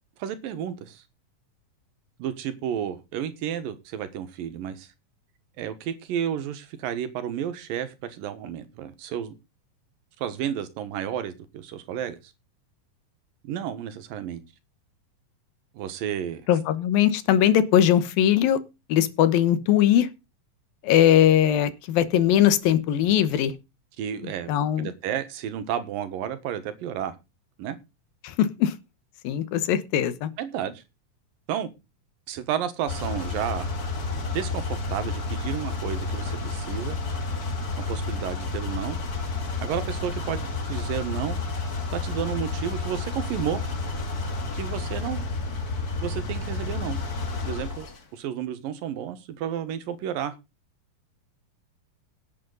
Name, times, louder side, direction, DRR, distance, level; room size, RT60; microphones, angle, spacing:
voice 1, 0.2-1.0 2.2-4.9 5.6-9.3 10.2-12.2 13.4-14.4 15.7-16.4 24.0-27.2 27.6-27.8 30.4-30.8 31.5-31.7 32.3-33.7 34.3-37.0 37.7-39.0 39.6-41.4 41.9-43.6 44.5-45.2 46.0-47.0 47.5-47.9 48.1-50.4, right 9 dB, 80° right, 3.0 m, -32 dB
voice 2, 16.5-18.6 18.9-20.1 20.8-23.5 24.5-24.9 28.2-28.7 29.2-30.3, left 10 dB, 90° left, 3.0 m, -20 dB
sound 1, 32.9-48.0, left 3 dB, 35° left, 1.8 m, -30 dB
17.5 x 8.5 x 4.0 m
omnidirectional pair, 4.0 m